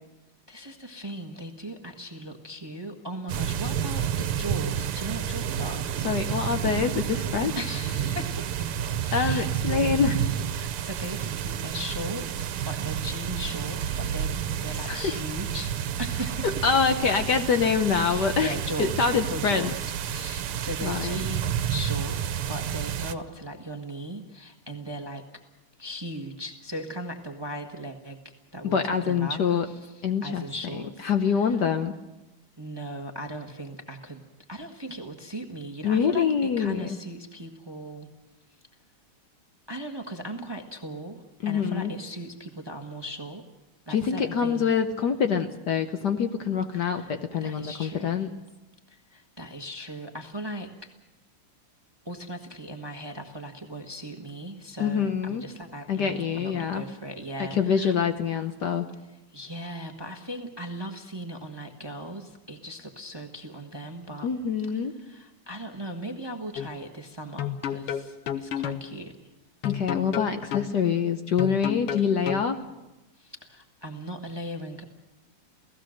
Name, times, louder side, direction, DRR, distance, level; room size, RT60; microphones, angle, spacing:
voice 1, 0.5-6.0 7.5-9.6 10.2-16.5 18.0-19.7 20.1-25.2 25.8-28.2 28.5-31.6 32.6-34.2 34.5-38.1 39.7-43.4 43.9-44.7 46.7-48.2 48.9-50.9 52.0-57.9 59.3-64.3 64.9-69.2 73.2-74.8, equal, 15° right, 5 dB, 1.1 m, -38 dB
sound 1, 3.3-23.1, right 9 dB, 80° right, 1.8 m, -30 dB
voice 2, 6.0-7.5 9.1-10.2 14.8-15.2 16.4-19.7 20.8-21.2 28.6-29.6 30.0-30.4 31.0-32.0 35.8-37.0 41.4-41.9 43.9-48.3 54.8-55.4 55.9-56.8 57.4-58.9 64.2-64.9 69.6-72.6, left 6 dB, 60° left, 8 dB, 1.3 m, -25 dB
sound 2, 66.6-66.7 67.4-68.8 69.6-70.7 71.4-72.5, left 9 dB, 90° left, 2.0 m, -30 dB
29.0 x 17.0 x 6.5 m, 1.0 s
omnidirectional pair, 2.4 m